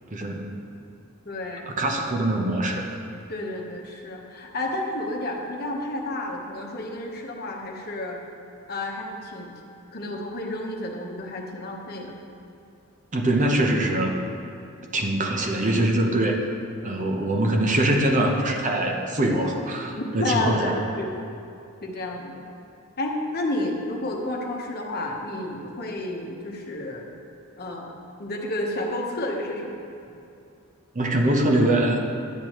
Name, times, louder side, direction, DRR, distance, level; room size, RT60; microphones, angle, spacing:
voice 1, 0.1-0.5 1.7-2.9 13.1-14.2 14.9-16.4 16.8-20.8 30.9-32.0, right 1 dB, 35° right, 2 dB, 0.8 m, -23 dB
voice 2, 1.2-1.7 3.3-8.2 8.7-9.5 9.9-12.2 19.9-21.2 21.8-22.4 23.0-27.0 27.6-29.8, left 1 dB, 45° left, 0 dB, 1.0 m, -31 dB
10.5 x 8.2 x 3.1 m, 2.7 s
head